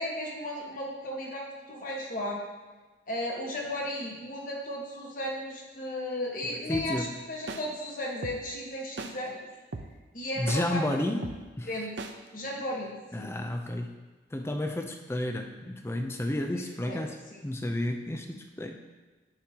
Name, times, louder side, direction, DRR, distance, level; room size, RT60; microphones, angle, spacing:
voice 1, 0.0-2.4 3.1-9.4 10.1-10.8 11.7-11.9 12.3-13.4 16.5-17.0 17.3-17.4, left 1 dB, 45° left, -2 dB, 1.4 m, -35 dB
voice 2, 6.7-7.1 10.4-11.7 13.1-14.0 14.3-17.2 17.4-18.8, left 1 dB, 15° left, 4 dB, 0.5 m, -31 dB
sound 1, 6.7-6.9 7.5-7.6 8.2-8.4 9.0-9.1 9.7-9.9 10.5-10.6 11.2-11.4 12.0-12.1, right 3 dB, 70° right, 0.6 m, -36 dB
10.5 x 6.3 x 2.9 m, 1.3 s
head